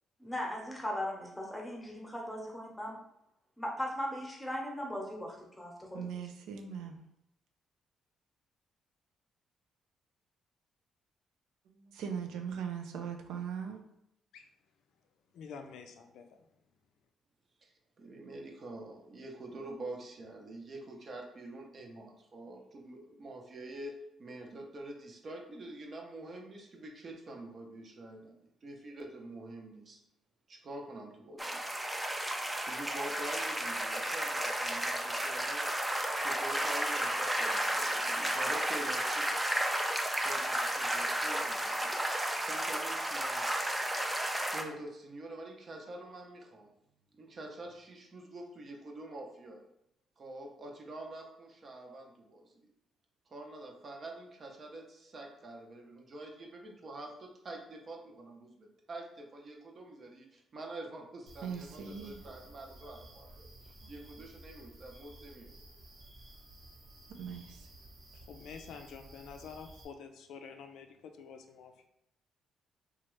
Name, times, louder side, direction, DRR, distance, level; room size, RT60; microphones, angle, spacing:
voice 1, 0.2-2.9 3.6-6.0, equal, 10° left, -1 dB, 0.9 m, -38 dB
voice 2, 5.9-7.0 11.7-13.8 61.4-62.2 63.8-63.9 67.2-67.7, right 7 dB, 85° right, 4 dB, 0.4 m, -40 dB
voice 3, 15.3-16.3 68.1-71.9, left 6 dB, 80° left, 6 dB, 0.4 m, -48 dB
voice 4, 17.6-30.0 30.5-31.6 32.6-35.7 36.1-39.5 40.0-41.9 42.4-44.2 44.5-46.7 47.1-49.7 50.2-52.7 53.3-65.5, right 2 dB, 45° right, 1 dB, 0.7 m, -46 dB
sound 1, 31.4-44.6, right 1 dB, 10° right, 0.4 m, -33 dB
sound 2, 61.3-69.8, right 1 dB, 65° right, 1.0 m, -54 dB
2.9 x 2.3 x 3.1 m, 0.81 s
cardioid pair, 90°, 0 cm